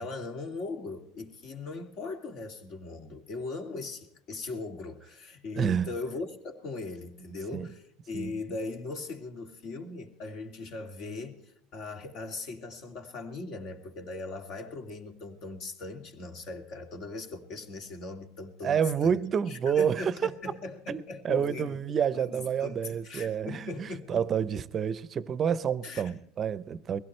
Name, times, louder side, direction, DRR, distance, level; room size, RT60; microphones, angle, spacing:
voice 1, 0.0-11.4 11.7-19.2 19.5-21.8 22.1-24.3 25.8-26.1, left 3 dB, 50° left, 2.6 m, -39 dB
voice 2, 5.6-5.9 7.5-7.7 8.1-8.3 18.6-20.3 20.9-27.0, right 7 dB, 30° right, 0.7 m, -29 dB
22.5 x 16.5 x 3.2 m
supercardioid pair, 130°, 0 cm